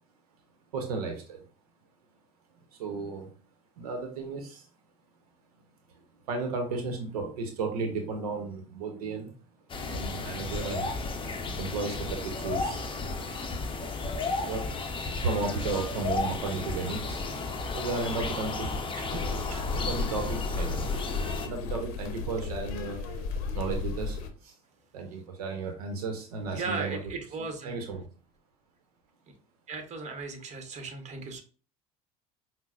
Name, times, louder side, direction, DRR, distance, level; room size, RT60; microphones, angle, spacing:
voice 1, 0.7-1.4 2.7-3.3 3.8-4.6 6.3-9.3 9.8-11.0 11.6-12.9 13.3-13.4 14.1-14.7 15.2-17.2 17.7-21.1 21.4-23.0 23.5-24.5 24.9-27.0 27.6-28.0, right 4 dB, 85° right, 4 dB, 0.7 m, -34 dB
sound 1, 9.7-21.5, left 3 dB, 25° left, 0.6 m, -33 dB
sound 2, 19.1-24.3, left 4 dB, 70° left, 0.6 m, -34 dB
voice 2, 26.5-27.9 29.7-31.4, right 4 dB, 35° right, 5 dB, 0.9 m, -37 dB
5.5 x 2.0 x 2.4 m, 0.38 s
hypercardioid pair, 75°, 19 cm